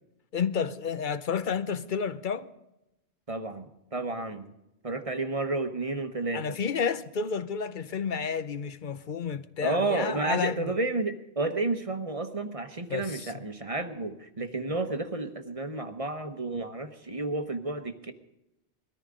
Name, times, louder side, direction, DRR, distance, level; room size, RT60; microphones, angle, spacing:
voice 1, 0.3-2.5 6.3-10.8 12.9-13.3, left 6 dB, 55° left, 0.7 m, -31 dB
voice 2, 3.3-4.5 4.8-6.6 9.6-18.1, right 3 dB, 35° right, 1.0 m, -31 dB
20.5 x 14.0 x 3.8 m
omnidirectional pair, 1.1 m